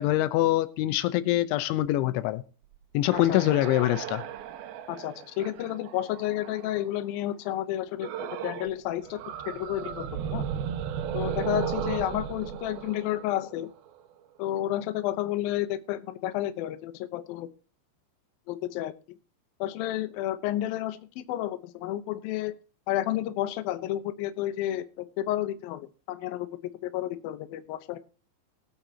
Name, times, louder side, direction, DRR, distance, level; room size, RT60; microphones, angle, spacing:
voice 1, 0.0-2.4 2.9-4.2, left 15 dB, 90° left, 3.3 m, -24 dB
sound 1, 2.7-6.9 8.0-8.8 9.0-13.9, right 9 dB, 80° right, 2.2 m, -35 dB
voice 2, 4.9-10.4 11.1-13.7 14.4-17.5 18.5-18.9 19.6-22.5 22.9-26.5 26.8-28.0, left 13 dB, 75° left, 2.3 m, -31 dB
20.5 x 9.2 x 2.9 m
omnidirectional pair, 5.3 m